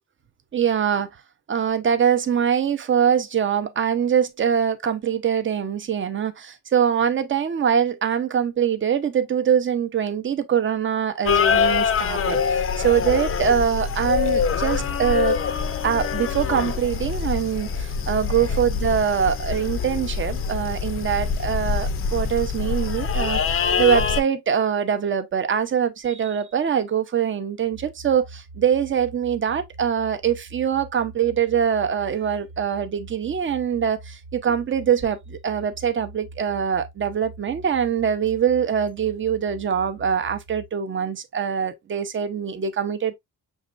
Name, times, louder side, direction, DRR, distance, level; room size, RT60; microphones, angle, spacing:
voice 1, 0.5-1.1 1.5-15.4 15.8-43.1, right 8 dB, 30° right, 0.6 m, -23 dB
sound 1, 11.3-24.2, left 6 dB, 35° left, 0.5 m, -24 dB
sound 2, 27.6-40.7, right 2 dB, 80° right, 1.1 m, -43 dB
6.3 x 3.1 x 2.4 m
cardioid pair, 145°, 39 cm